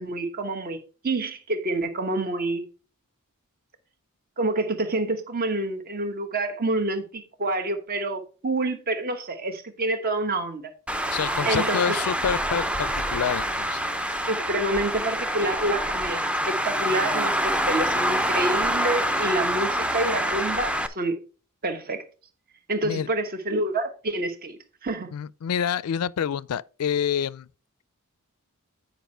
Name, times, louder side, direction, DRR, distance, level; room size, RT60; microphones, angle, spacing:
voice 1, 0.0-2.6 4.4-10.7 11.4-12.0 14.3-21.2 21.6-22.0 22.7-25.1, right 2 dB, 40° right, 1.1 m, -28 dB
Traffic noise roadway noise, 10.9-20.9, equal, 5° right, 0.5 m, -26 dB
voice 2, 11.1-13.8 22.8-23.1 25.1-27.5, left 8 dB, 75° left, 0.4 m, -27 dB
9.2 x 5.3 x 4.4 m
head